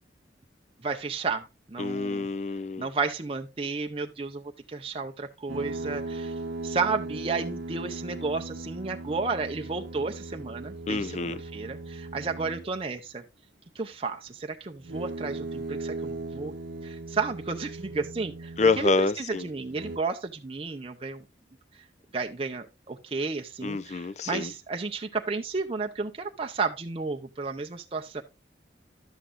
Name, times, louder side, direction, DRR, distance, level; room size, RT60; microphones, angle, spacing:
voice 1, 0.8-2.3 2.8-4.4 4.7-6.3 6.6-13.2 13.7-16.5 16.8-18.9 19.2-21.2 22.1-28.2, right 4 dB, 30° right, 0.6 m, -32 dB
voice 2, 1.8-2.9 10.9-11.4 18.6-19.5 23.6-24.5, left 3 dB, 40° left, 0.5 m, -27 dB
sound 1, 5.5-12.8 14.8-19.0 19.6-20.0, right 2 dB, 80° right, 0.7 m, -38 dB
11.0 x 8.1 x 2.5 m
head